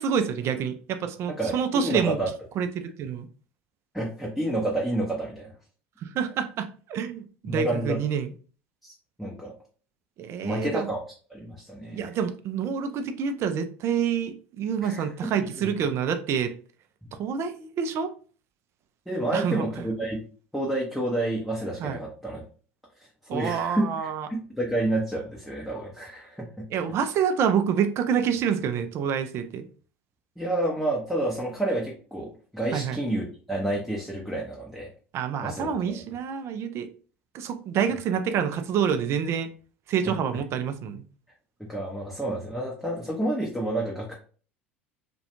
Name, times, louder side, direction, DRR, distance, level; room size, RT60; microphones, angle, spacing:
voice 1, 0.0-2.2 2.6-3.3 6.0-8.3 10.2-10.9 11.9-16.5 17.1-18.1 19.3-19.6 21.8-22.0 23.3-24.3 26.7-29.7 32.7-33.0 35.1-36.9 37.3-39.5 39.9-41.0, right 7 dB, 40° right, 9 dB, 0.4 m, -27 dB
voice 2, 1.4-2.3 3.9-5.5 7.4-8.0 8.8-8.9 9.2-9.5 10.4-11.0 11.3-12.1 14.8-15.1 15.4-15.7 19.1-20.2 20.5-22.4 23.3-24.1 24.6-26.7 30.4-34.9 35.4-36.0 40.0-40.1 41.6-44.1, right 1 dB, ahead, -3 dB, 0.6 m, -29 dB
2.4 x 2.2 x 2.9 m, 0.40 s
figure-of-eight pair, 70°, 7 cm